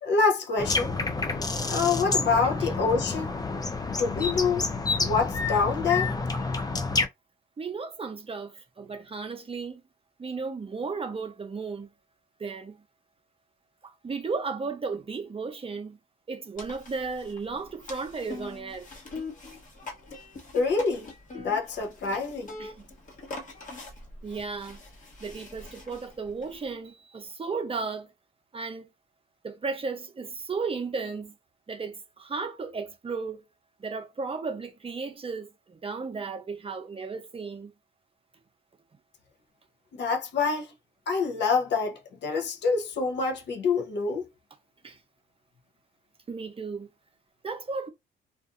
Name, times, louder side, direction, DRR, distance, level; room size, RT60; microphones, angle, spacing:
voice 1, 0.0-0.9 1.7-3.3 3.9-4.7 5.0-6.1 20.5-21.1 21.3-22.5 39.9-40.7 41.1-44.2, left 4 dB, 60° left, 0.8 m, -26 dB
sound 1, 0.6-7.1, left 3 dB, 20° left, 0.5 m, -29 dB
voice 2, 7.6-9.8 10.2-11.9 12.4-12.8 13.8-16.0 16.3-18.9 22.6-22.9 24.2-24.8 25.2-28.1 28.5-28.9 29.4-31.3 31.7-33.4 33.8-37.7 44.8-45.0 46.3-46.9 47.4-47.9, right 4 dB, 30° right, 0.7 m, -34 dB
sound 2, 16.6-26.7, left 3 dB, 40° left, 1.1 m, -43 dB
2.5 x 2.5 x 2.5 m
cardioid pair, 90°, 20 cm